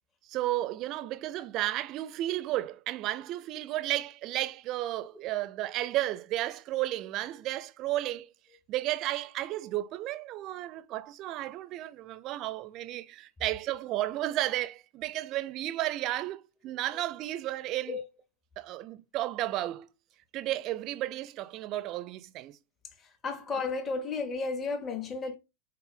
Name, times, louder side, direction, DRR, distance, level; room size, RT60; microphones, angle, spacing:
voice 1, 0.2-8.3 8.7-18.0 18.6-19.9 20.3-22.6, right 15 dB, 35° right, 0.4 m, -33 dB
voice 2, 23.2-25.3, left 4 dB, 20° left, 0.7 m, -33 dB
4.3 x 2.6 x 3.3 m
figure-of-eight pair, 90°, 0 cm